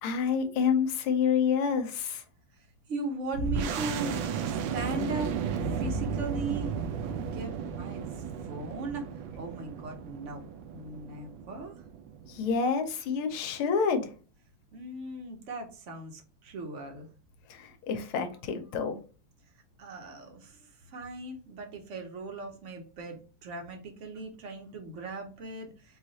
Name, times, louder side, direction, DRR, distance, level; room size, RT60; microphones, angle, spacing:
voice 1, 0.0-2.2 12.3-14.1 17.5-19.0, left 6 dB, 80° left, 7 dB, 1.6 m, -28 dB
voice 2, 2.5-6.8 7.0-9.0 9.4-11.7 14.7-17.1 19.8-26.0, right 3 dB, 50° right, 3 dB, 0.9 m, -39 dB
sound 1, 3.3-12.5, right 6 dB, 75° right, 1.3 m, -34 dB
4.6 x 2.4 x 4.0 m, 0.37 s
omnidirectional pair, 2.3 m